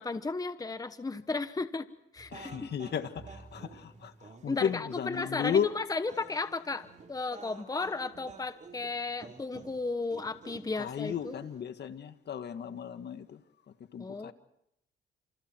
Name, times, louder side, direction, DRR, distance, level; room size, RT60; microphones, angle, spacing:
voice 1, 0.0-1.9 2.1-2.7 4.5-11.4 14.0-14.3, left 3 dB, 20° left, 1.2 m, -34 dB
sound 1, 2.2-11.6, right 4 dB, 40° right, 4.1 m, -51 dB
voice 2, 2.3-5.7 10.7-13.4 13.9-14.3, left 8 dB, 60° left, 1.8 m, -34 dB
30.0 x 28.0 x 4.6 m
cardioid pair, 90°, 20 cm